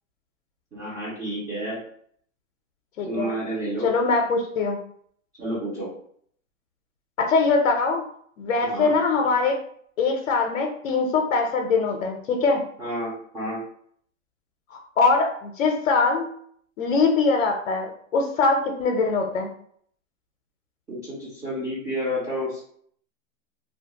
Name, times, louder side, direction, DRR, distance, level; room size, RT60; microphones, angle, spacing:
voice 1, 0.7-1.8 3.1-3.9 5.4-5.9 8.6-8.9 12.8-13.6 20.9-22.6, equal, 10° right, -9 dB, 0.4 m, -30 dB
voice 2, 3.0-3.3 3.8-4.8 7.2-8.0 8.4-9.6 10.0-12.6 14.7-16.3 16.8-19.5, left 4 dB, 80° left, 2 dB, 0.6 m, -22 dB
2.3 x 2.1 x 2.8 m, 0.62 s
hypercardioid pair, 135°, 39 cm